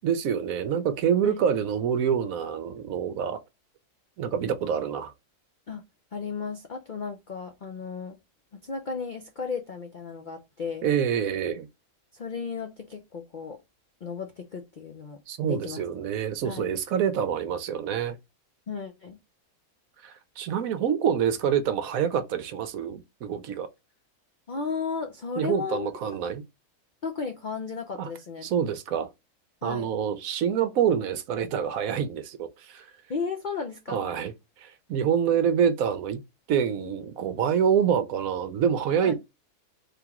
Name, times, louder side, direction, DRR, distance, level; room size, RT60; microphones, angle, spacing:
voice 1, 0.0-3.4 4.2-5.1 10.8-11.7 15.3-18.2 20.0-23.7 25.4-26.4 28.0-28.1 28.4-29.1 29.6-32.9 33.9-34.3 34.6-36.2 36.5-39.1, right 8 dB, 70° right, 1.0 m, -26 dB
voice 2, 6.1-8.2 8.5-10.9 12.1-13.6 14.0-15.8 16.4-16.7 18.7-19.2 24.5-25.9 27.0-28.5 29.6-29.9 33.1-34.1 39.0-39.1, left 5 dB, 65° left, 0.4 m, -34 dB
3.5 x 2.9 x 3.5 m
omnidirectional pair, 1.6 m